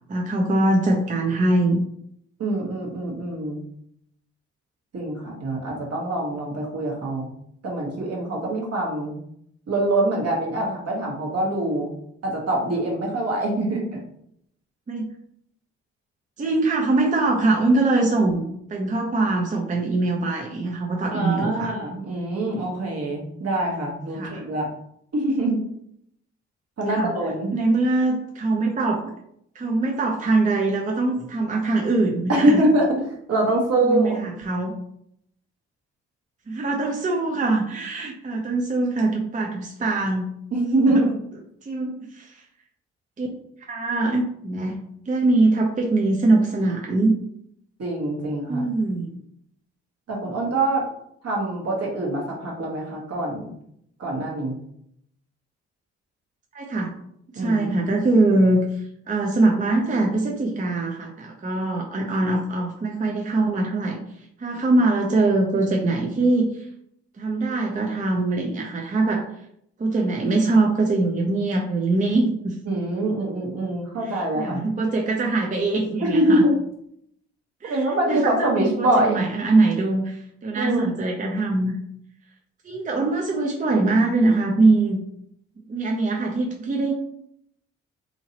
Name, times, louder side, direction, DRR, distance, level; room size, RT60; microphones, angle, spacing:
voice 1, 0.1-1.8 14.9-15.1 16.4-18.4 18.7-21.7 24.1-24.4 26.9-27.1 27.5-29.1 29.5-32.6 33.8-34.8 36.5-40.3 40.8-41.0 41.6-42.4 43.2-43.3 43.7-47.2 48.5-49.1 56.5-56.9 57.3-64.0 64.4-66.7 67.2-69.3 69.8-72.6 74.0-76.4 77.6-81.8 82.6-85.0 85.7-86.9, right 2 dB, 25° right, 0 dB, 0.6 m, -22 dB
voice 2, 2.4-3.6 4.9-7.3 7.6-9.2 9.7-11.9 12.2-14.0 21.1-24.7 25.1-25.6 26.8-27.5 32.3-32.9 33.3-34.3 40.5-41.2 47.8-48.6 50.1-50.8 51.2-53.5 54.0-54.6 57.3-57.7 72.7-74.6 76.0-76.6 77.6-79.2 80.5-80.9, right 1 dB, 55° right, -2 dB, 1.2 m, -24 dB
2.9 x 2.7 x 2.8 m, 0.72 s
supercardioid pair, 45°, 30 cm